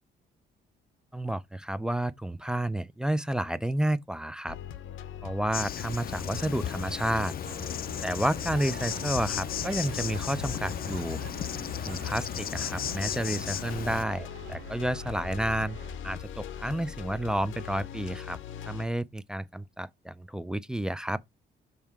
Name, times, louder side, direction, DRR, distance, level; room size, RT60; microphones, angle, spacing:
voice 1, 1.1-4.6 5.2-7.3 8.0-11.2 11.9-15.8 16.0-18.4 18.7-21.2, right 1 dB, 5° right, 0.4 m, -30 dB
sound 1, 4.5-18.9, left 10 dB, 80° left, 0.8 m, -41 dB
Insect, 5.5-14.0, left 9 dB, 50° left, 0.5 m, -35 dB
sound 2, 7.4-16.0, right 13 dB, 75° right, 0.4 m, -46 dB
5.5 x 4.5 x 4.7 m
cardioid pair, 90°, 20 cm